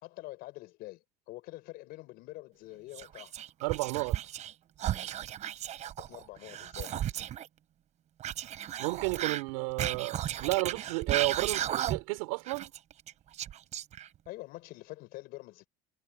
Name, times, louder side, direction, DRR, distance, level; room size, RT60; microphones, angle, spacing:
voice 1, 0.0-3.3 6.0-7.1 14.3-15.7, left 19 dB, 65° left, 5.8 m, -46 dB
Whispering, 2.9-4.5 4.8-7.5 8.2-12.2 12.5-14.3, right 11 dB, 40° right, 1.0 m, -35 dB
voice 2, 3.6-4.2 8.8-12.7, right 26 dB, 85° right, 5.1 m, -32 dB
supercardioid pair, 115°, 17 cm